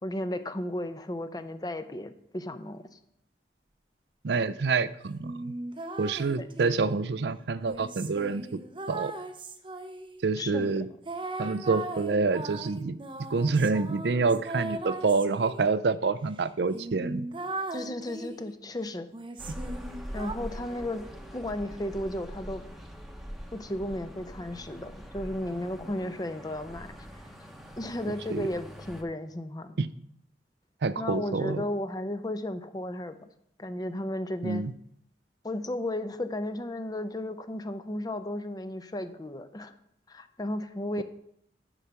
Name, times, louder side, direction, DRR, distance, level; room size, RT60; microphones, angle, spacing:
voice 1, 0.0-2.8 6.4-6.5 10.4-10.7 17.7-19.1 20.1-21.0 21.3-22.6 23.5-26.9 27.1-27.2 27.8-29.8 31.0-33.1 33.6-34.6 35.4-39.7 40.1-41.0, left 1 dB, 20° left, 10 dB, 0.6 m, -34 dB
voice 2, 4.2-5.5 6.0-8.6 8.9-9.1 10.2-10.9 11.4-13.0 13.3-17.3 28.3-28.4 29.8-29.9 30.8-31.6 34.4-34.7 41.0-41.1, right 4 dB, 65° right, 15 dB, 0.5 m, -27 dB
sound 1, 5.2-6.9 7.7-10.2 11.1-15.7 16.3-16.4 16.7-18.5 19.1-20.3, right 2 dB, 30° right, 0.7 m, -38 dB
sound 2, 19.4-29.0, equal, ahead, 1.0 m, -43 dB
10.0 x 4.9 x 6.8 m, 0.72 s
head